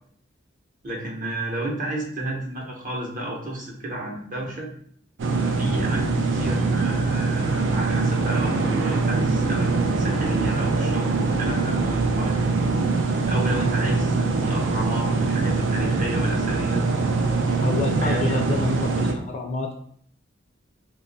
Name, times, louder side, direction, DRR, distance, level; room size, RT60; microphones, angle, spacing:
voice 1, 0.8-4.7 5.4-12.5 13.3-16.8 18.0-18.4, right 1 dB, 45° right, -1 dB, 0.8 m, -32 dB
sound 1, 5.2-19.1, right 3 dB, 65° right, 0.4 m, -23 dB
voice 2, 17.6-19.7, left 3 dB, 35° left, 3 dB, 0.4 m, -28 dB
2.9 x 2.3 x 3.9 m, 0.63 s
head